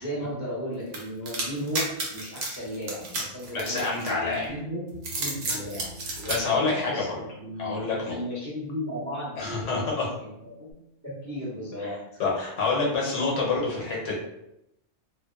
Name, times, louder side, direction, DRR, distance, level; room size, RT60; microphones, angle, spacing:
voice 1, 0.0-4.8 5.2-9.8 10.2-10.7 11.0-11.9, equal, 30° right, -7 dB, 0.3 m, -35 dB
sound 1, 0.9-4.4 4.9-6.4, right 3 dB, 70° right, 0.9 m, -32 dB
voice 2, 3.5-4.5 6.1-7.2 7.6-8.2 9.4-10.1 11.8-11.9 12.2-14.1, left 3 dB, 75° left, -3 dB, 1.1 m, -27 dB
Bass guitar, 4.5-10.7, equal, 45° left, 0.7 m, -48 dB
2.6 x 2.1 x 2.3 m, 0.82 s
omnidirectional pair, 1.3 m